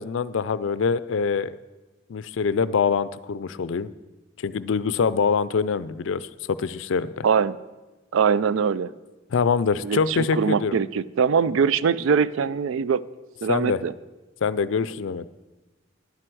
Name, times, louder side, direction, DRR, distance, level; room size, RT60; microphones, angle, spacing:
voice 1, 0.0-1.6 2.1-3.9 4.4-7.3 9.3-10.8 13.5-13.8 14.4-15.2, left 5 dB, 70° left, 16 dB, 0.4 m, -24 dB
voice 2, 7.2-7.6 8.1-8.9 9.8-13.0 13.4-13.9, right 6 dB, 85° right, 17 dB, 0.4 m, -22 dB
11.0 x 7.7 x 6.1 m, 1.2 s
head